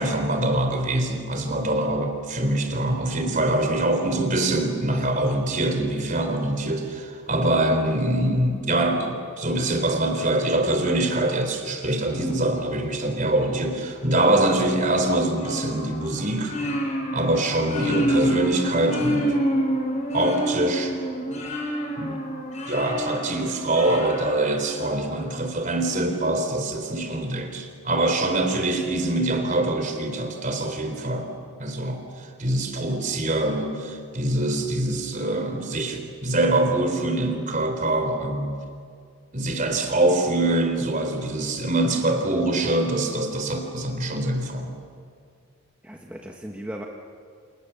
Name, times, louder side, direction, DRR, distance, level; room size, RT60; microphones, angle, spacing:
voice 1, 0.0-16.5 17.1-19.3 20.1-20.9 22.0-22.2 22.7-31.3 31.6-32.0 32.4-38.6 39.3-44.7, right 1 dB, 35° right, 5 dB, 3.9 m, -24 dB
sound 1, 15.4-25.2, equal, 30° left, 4.9 m, -28 dB
voice 2, 45.8-46.8, equal, 5° right, -1 dB, 1.5 m, -38 dB
30.0 x 28.0 x 7.1 m, 2.2 s
head